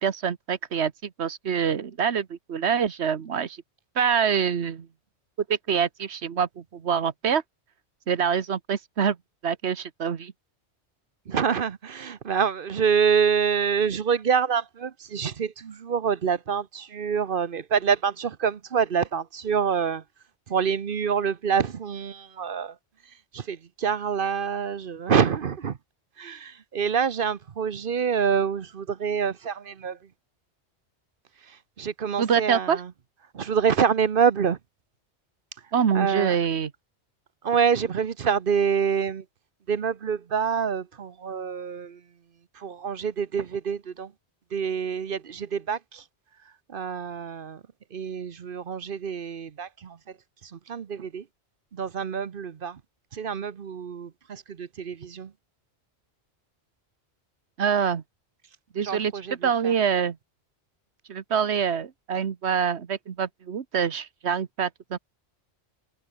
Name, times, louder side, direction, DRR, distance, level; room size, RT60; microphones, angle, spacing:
voice 1, 0.0-3.6 4.0-4.9 5.5-7.4 8.1-9.2 9.4-10.3 32.2-32.8 35.7-36.7 57.6-58.0 58.7-60.2 61.1-65.0, right 7 dB, 70° right, 1.4 m, -25 dB
voice 2, 11.3-20.0 20.5-22.7 23.3-25.7 26.2-30.0 31.8-32.7 33.3-34.6 35.9-36.3 37.4-39.2 39.7-42.0 42.6-44.1 44.5-45.8 46.7-47.6 47.9-49.7 50.7-51.2 51.8-52.7 53.2-55.3 58.9-59.2, right 6 dB, 55° right, 1.0 m, -26 dB
omnidirectional pair, 1.1 m